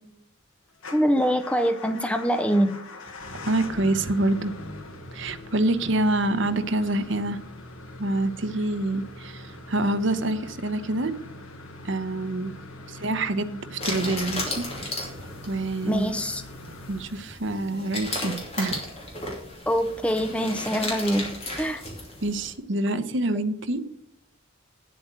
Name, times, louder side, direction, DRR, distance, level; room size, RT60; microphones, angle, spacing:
Motor vehicle (road) / Engine starting / Idling, 0.8-17.7, left 2 dB, 80° left, 1.4 m, -42 dB
voice 1, 0.9-2.8 13.5-13.6 15.8-16.4 19.7-21.9 22.9-23.0 23.3-23.4, equal, 5° left, 8 dB, 0.5 m, -24 dB
voice 2, 3.4-4.5 5.1-7.4 8.0-11.1 11.8-12.5 12.9-15.1 15.5-16.1 16.9-18.8 22.2-23.8, right 2 dB, 60° right, 10 dB, 0.9 m, -26 dB
sound 1, 13.8-22.5, left 2 dB, 30° left, 2.6 m, -35 dB
9.1 x 7.9 x 6.6 m, 0.79 s
head